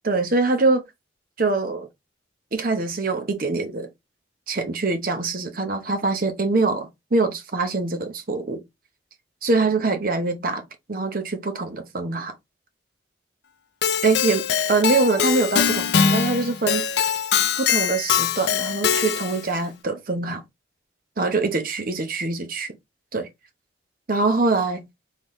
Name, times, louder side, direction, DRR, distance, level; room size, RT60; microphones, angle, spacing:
voice 1, 0.0-0.8 1.4-1.9 2.5-3.9 4.5-8.6 9.4-12.3 14.0-16.9 17.6-20.4 21.2-22.8 23.1-23.3 24.1-24.9, right 3 dB, 50° right, 0.8 m, -24 dB
Keyboard (musical), 13.8-19.5, left 7 dB, 60° left, 0.4 m, -22 dB
4.0 x 3.6 x 3.0 m
head